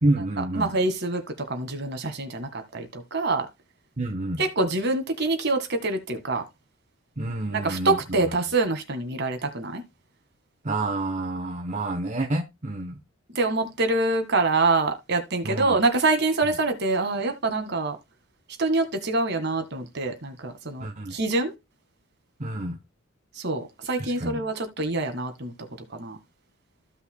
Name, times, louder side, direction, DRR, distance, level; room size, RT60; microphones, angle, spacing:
voice 1, 0.0-0.7 4.0-4.4 7.2-8.3 10.6-13.0 15.4-15.8 20.8-21.1 22.4-22.8 24.0-24.4, right 2 dB, 35° right, 0.9 m, -28 dB
voice 2, 0.6-1.2 1.5-3.5 4.4-6.4 7.5-9.8 13.3-18.0 18.6-21.5 23.4-25.5 26.0-26.2, right 3 dB, 50° right, 1.8 m, -25 dB
15.0 x 5.5 x 2.2 m
head